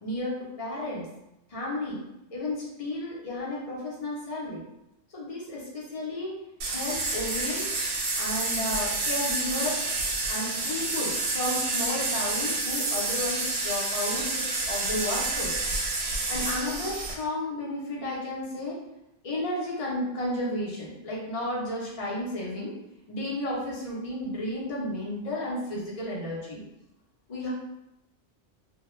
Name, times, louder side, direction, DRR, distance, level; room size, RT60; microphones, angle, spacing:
voice 1, 0.0-1.1 1.5-2.0 2.3-4.6 5.1-6.4 6.7-7.7 8.2-9.8 10.3-15.6 16.3-18.8 19.2-22.7 23.1-26.6 27.3-27.5, left 1 dB, 40° left, -5 dB, 0.6 m, -33 dB
sound 1, 6.6-17.1, right 2 dB, 65° right, 0.8 m, -29 dB
2.3 x 2.1 x 3.0 m, 0.89 s
omnidirectional pair, 1.3 m